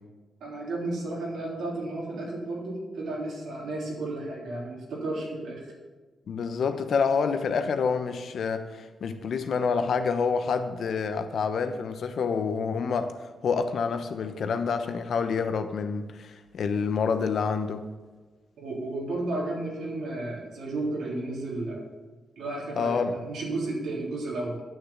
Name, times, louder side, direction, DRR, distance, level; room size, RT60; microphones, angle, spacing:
voice 1, 0.4-5.7 18.6-21.8 22.4-24.6, right 2 dB, 85° right, -3 dB, 3.5 m, -33 dB
voice 2, 6.3-17.8 22.8-23.1, left 5 dB, 70° left, 8 dB, 0.9 m, -28 dB
8.7 x 6.8 x 8.2 m, 1.3 s
cardioid pair, 70°, 0 cm